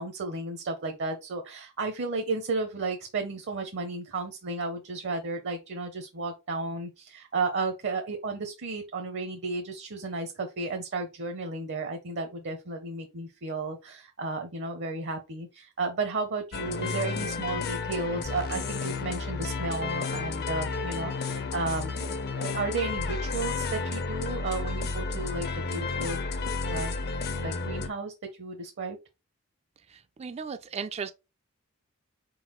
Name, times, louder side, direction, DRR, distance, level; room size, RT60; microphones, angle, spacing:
voice 1, 0.0-26.2 26.6-26.9 27.3-28.1 28.4-29.0, right 3 dB, 55° right, 0.7 m, -33 dB
sound 1, 16.5-27.9, left 4 dB, 50° left, 0.6 m, -32 dB
voice 2, 29.9-31.1, right 6 dB, 30° right, 0.3 m, -36 dB
4.5 x 3.9 x 3.0 m
head